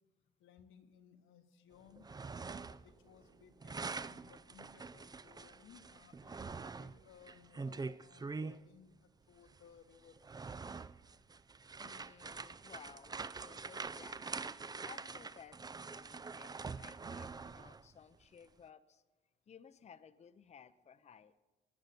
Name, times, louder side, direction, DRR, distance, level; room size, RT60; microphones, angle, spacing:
voice 1, 0.4-2.0 2.7-10.2, left 8 dB, 90° left, 5 dB, 1.4 m, -62 dB
sound 1, 1.9-3.0 3.2-8.6 9.5-9.6 10.1-17.9, right 4 dB, 20° right, 0.4 m, -45 dB
voice 2, 11.8-14.4 14.8-15.6 15.9-19.0 19.5-21.4, left 7 dB, 35° left, 11 dB, 0.6 m, -58 dB
18.5 x 6.5 x 9.4 m, 1.2 s
cardioid pair, 90°, 20 cm